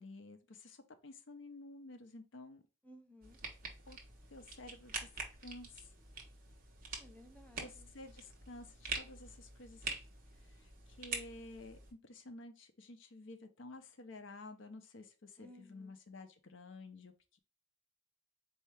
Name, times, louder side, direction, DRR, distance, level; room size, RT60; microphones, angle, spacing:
voice 1, 0.0-2.6 3.9-4.0 4.3-5.1 5.4-5.9 7.6-10.0 10.5-17.4, left 2 dB, 70° left, 7 dB, 0.6 m, -52 dB
voice 2, 2.8-3.4 7.0-7.9 15.4-15.9, left 1 dB, 5° left, 3 dB, 0.6 m, -58 dB
sound 1, 3.2-11.9, right 4 dB, 50° right, 1.1 m, -46 dB
4.3 x 2.8 x 3.3 m, 0.32 s
head